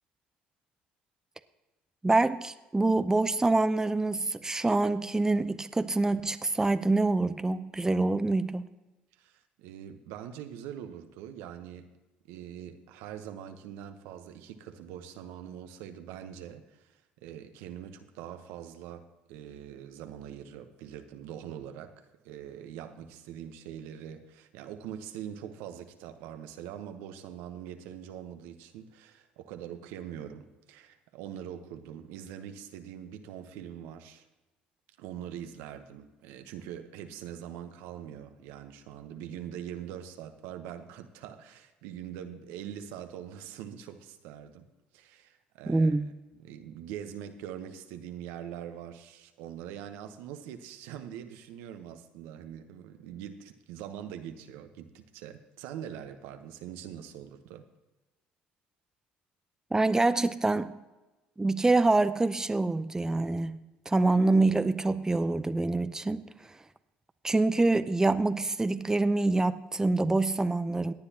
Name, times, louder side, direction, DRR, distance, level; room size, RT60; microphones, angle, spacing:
voice 1, 2.0-8.7 45.7-46.1 59.7-60.7 61.4-66.3 67.2-70.9, right 2 dB, 15° right, 0.6 m, -26 dB
voice 2, 9.2-11.9 12.2-34.3 35.0-44.7 44.9-46.0 46.3-57.7, right 9 dB, 75° right, 1.0 m, -43 dB
17.5 x 9.7 x 2.9 m
hypercardioid pair, 70°, 4 cm